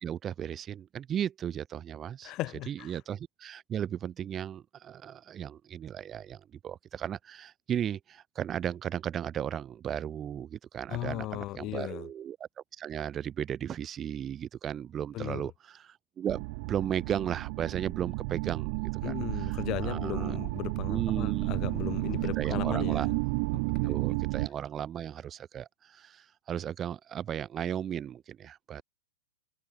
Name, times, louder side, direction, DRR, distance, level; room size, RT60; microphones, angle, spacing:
voice 1, 0.0-2.3 2.7-12.5 12.8-19.6 19.8-20.4 20.9-23.1 23.8-28.8, right 9 dB, 25° right, 2.0 m, -36 dB
voice 2, 2.2-2.9 10.9-12.1 15.1-15.5 19.0-23.1 23.8-24.0, left 17 dB, 35° left, 1.0 m, -36 dB
sound 1, 16.3-24.5, right 32 dB, 50° right, 0.4 m, -32 dB
hypercardioid pair, 125°, 0 cm